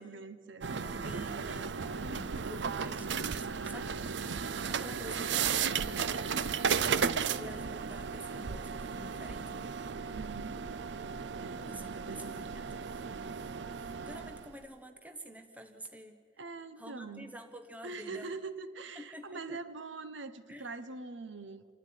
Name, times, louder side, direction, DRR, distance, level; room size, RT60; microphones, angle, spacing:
voice 1, 0.0-0.7 10.1-10.7 11.4-12.5 16.4-17.3 17.8-21.7, right 3 dB, 85° right, 12 dB, 1.1 m, -43 dB
sound 1, 0.6-14.5, right 6 dB, 70° right, 0.5 m, -35 dB
voice 2, 0.8-6.6 7.3-9.7 11.6-13.3 14.0-16.5 16.8-18.3 18.9-19.6 20.5-20.7, equal, 10° right, 6 dB, 1.1 m, -49 dB
27.0 x 12.5 x 9.5 m, 2.1 s
head